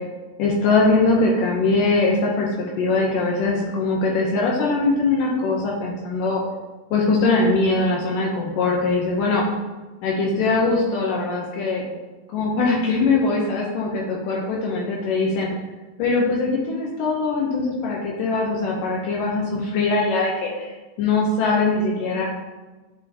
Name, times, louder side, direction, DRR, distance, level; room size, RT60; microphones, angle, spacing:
voice 1, 0.4-6.4 6.9-9.4 10.0-11.8 12.3-15.5 16.0-22.3, left 3 dB, 80° left, -2 dB, 2.4 m, -21 dB
9.8 x 4.3 x 2.8 m, 1.2 s
omnidirectional pair, 3.9 m